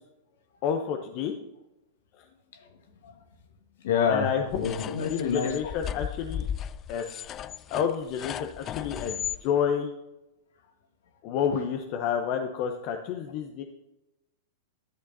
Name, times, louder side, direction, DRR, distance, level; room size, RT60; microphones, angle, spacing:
voice 1, 0.6-1.4 4.1-4.4 5.1-6.5 6.9-7.0 7.7-9.9 11.2-13.6, left 7 dB, 50° left, 4 dB, 0.8 m, -29 dB
voice 2, 3.8-5.7 7.0-7.4 11.5-11.6, left 6 dB, 65° left, 5 dB, 1.5 m, -29 dB
sound 1, 4.5-9.4, left 10 dB, 35° left, 0.3 m, -36 dB
12.5 x 6.7 x 2.7 m, 0.96 s
hypercardioid pair, 100°, 0 cm